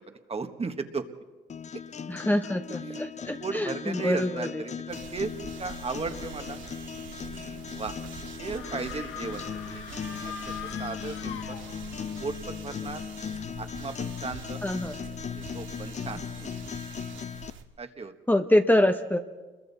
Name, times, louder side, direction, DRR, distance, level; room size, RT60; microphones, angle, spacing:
voice 1, 0.3-1.1 2.7-5.3 5.6-6.6 7.3-7.9 8.4-10.5 10.8-11.6 12.2-13.0 13.6-14.6 15.3-16.5 17.8-18.1, right 4 dB, 30° right, 7 dB, 1.5 m, -36 dB
sound 1, 1.5-17.5, left 7 dB, 35° left, 0.6 m, -38 dB
voice 2, 2.1-4.6 14.6-14.9 18.3-19.2, left 1 dB, 10° left, 6 dB, 0.9 m, -25 dB
sound 2, 4.9-17.6, right 6 dB, 75° right, 2.0 m, -45 dB
sound 3, 8.5-12.1, left 7 dB, 80° left, 1.3 m, -42 dB
29.0 x 22.0 x 4.2 m, 1.3 s
cardioid pair, 90°, 20 cm